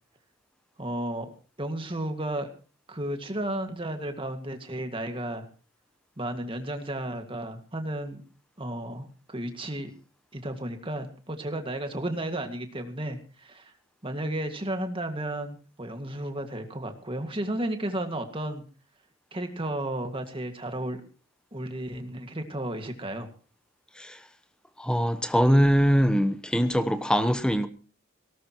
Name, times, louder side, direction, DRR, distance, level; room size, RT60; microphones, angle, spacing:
voice 1, 0.8-1.3 1.6-2.5 2.9-5.5 6.2-8.2 8.6-9.9 10.3-13.7 14.0-18.6 19.3-21.0 21.5-23.3, right 1 dB, 25° right, 2.0 m, -33 dB
voice 2, 24.8-27.7, equal, 5° left, 1.1 m, -22 dB
18.5 x 18.0 x 3.1 m
head